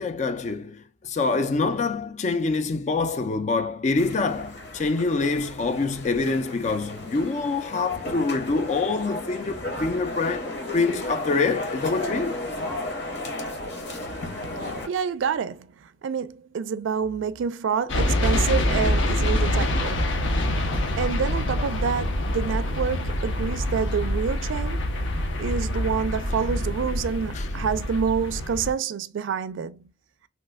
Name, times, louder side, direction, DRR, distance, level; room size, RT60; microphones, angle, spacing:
voice 1, 0.0-12.4 27.3-27.5, left 3 dB, 40° left, 0.3 m, -26 dB
sound 1, 4.0-14.9, left 1 dB, 60° left, 1.0 m, -34 dB
voice 2, 14.6-20.0 20.6-20.7 21.0-24.9 25.4-29.9, right 6 dB, 85° right, 0.3 m, -28 dB
sound 2, 17.9-28.7, left 1 dB, 80° left, 0.7 m, -25 dB
2.9 x 2.1 x 3.3 m
head